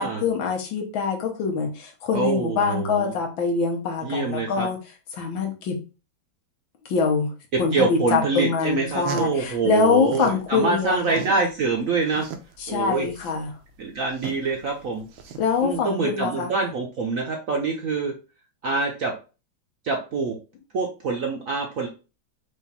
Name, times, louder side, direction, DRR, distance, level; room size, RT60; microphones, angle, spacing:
voice 1, 0.0-4.8 5.1-5.8 6.9-7.3 7.6-11.2 12.6-13.5 15.4-16.5, left 5 dB, 80° left, 2 dB, 1.8 m, -24 dB
voice 2, 2.1-3.1 4.0-4.7 7.5-12.3 12.7-13.1 13.8-15.1 15.6-18.1 18.6-19.1 19.8-20.4 20.7-21.9, right 4 dB, 60° right, 1 dB, 0.9 m, -25 dB
sound 1, 8.7-10.4 10.8-15.8, right 6 dB, 90° right, 1.5 m, -38 dB
5.0 x 2.5 x 4.2 m, 0.32 s
omnidirectional pair, 2.1 m